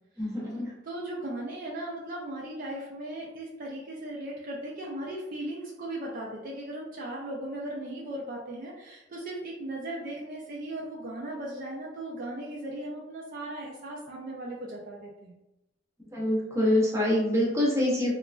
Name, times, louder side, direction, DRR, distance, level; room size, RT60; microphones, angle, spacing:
voice 1, 0.2-0.7 16.1-18.1, left 1 dB, 15° right, -4 dB, 0.7 m, -25 dB
voice 2, 0.8-15.4, right 1 dB, 45° right, -3 dB, 0.4 m, -37 dB
2.8 x 2.4 x 2.3 m, 0.94 s
head